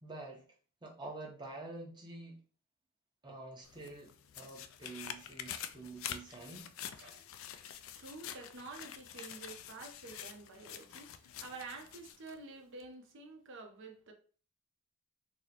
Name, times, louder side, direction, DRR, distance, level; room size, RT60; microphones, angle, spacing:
voice 1, 0.0-0.5 0.8-2.3 3.2-6.7, right 2 dB, 20° right, 0.8 m, -47 dB
sound 1, 3.6-12.4 12.8-12.9, left 9 dB, 65° left, 0.3 m, -47 dB
voice 2, 7.0-7.7 8.0-14.1, right 3 dB, 60° right, 0.7 m, -49 dB
2.9 x 2.0 x 4.0 m
head